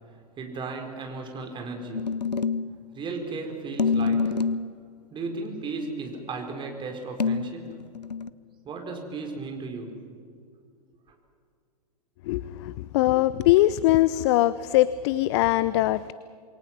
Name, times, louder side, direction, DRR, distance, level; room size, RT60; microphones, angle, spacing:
voice 1, 0.1-2.2 2.9-4.4 5.1-7.8 8.6-10.0 11.1-11.2, right 3 dB, 25° right, 3 dB, 4.5 m, -35 dB
sound 1, 1.9-2.8 3.8-4.8 7.2-8.3, left 5 dB, 85° left, 0.8 m, -26 dB
voice 2, 12.2-16.1, left 16 dB, 45° left, 18 dB, 0.6 m, -22 dB
27.5 x 22.5 x 6.1 m, 2.2 s
figure-of-eight pair, 105°, 21 cm